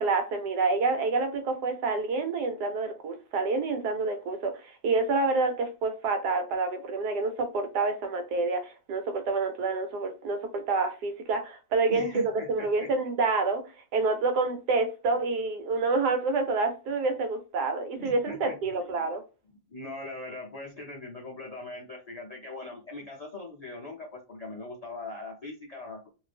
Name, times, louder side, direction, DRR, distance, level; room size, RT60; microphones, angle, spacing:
voice 1, 0.0-13.6 13.9-19.2, right 3 dB, 85° right, 1.3 m, -28 dB
voice 2, 11.9-12.9 15.1-15.2 18.0-18.9 19.7-26.1, left 2 dB, 75° left, 0.3 m, -41 dB
2.7 x 2.5 x 3.3 m
omnidirectional pair, 1.7 m